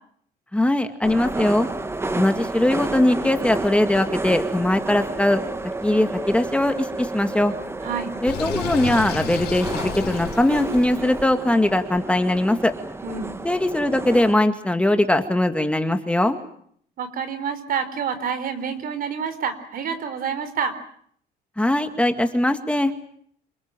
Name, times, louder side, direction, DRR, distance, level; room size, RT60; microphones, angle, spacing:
voice 1, 0.5-1.7 2.1-5.4 5.8-7.5 8.2-12.7 13.4-16.4 21.6-22.9, left 1 dB, 5° left, 7 dB, 2.1 m, -20 dB
sound 1, 1.0-14.3, right 2 dB, 15° right, 1.5 m, -31 dB
voice 2, 7.8-8.1 13.0-13.3 17.0-20.8, right 6 dB, 55° right, 11 dB, 4.3 m, -28 dB
Sink (filling or washing), 8.3-11.0, left 8 dB, 70° left, 4.0 m, -32 dB
28.0 x 20.5 x 9.0 m, 0.64 s
cardioid pair, 110°, 17 cm